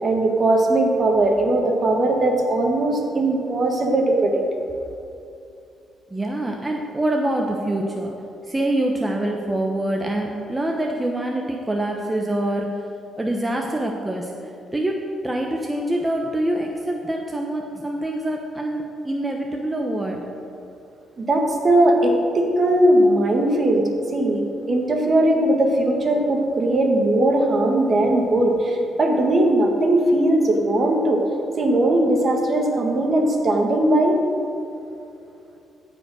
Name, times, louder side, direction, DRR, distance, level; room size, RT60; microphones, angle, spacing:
voice 1, 0.0-4.4 21.2-31.2 31.6-34.2, right 1 dB, 40° right, 2 dB, 1.8 m, -19 dB
voice 2, 6.1-8.1 8.5-12.7 13.2-20.2, right 1 dB, 15° right, 1 dB, 1.0 m, -25 dB
15.0 x 5.3 x 6.3 m, 2.7 s
cardioid pair, 90°, 0 cm